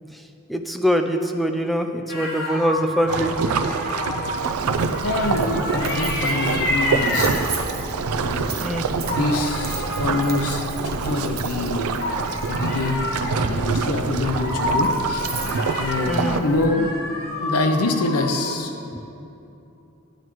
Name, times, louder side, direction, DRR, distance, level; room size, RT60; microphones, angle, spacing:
voice 1, 0.5-3.3 8.6-8.9 16.1-16.4, equal, ahead, 5 dB, 0.4 m, -23 dB
sound 1, 2.1-8.0 8.8-11.3 12.0-18.6, left 1 dB, 45° left, 1.4 m, -29 dB
sound 2, 3.1-16.4, right 5 dB, 75° right, 0.5 m, -26 dB
Coin (dropping), 4.4-16.7, right 2 dB, 45° right, 0.9 m, -34 dB
voice 2, 5.0-7.4 8.2-8.5 9.1-11.9 12.5-13.0 13.5-15.3 15.8-17.0 17.4-18.7, left 2 dB, 85° left, 6 dB, 0.8 m, -25 dB
12.5 x 9.1 x 3.1 m, 2.8 s
head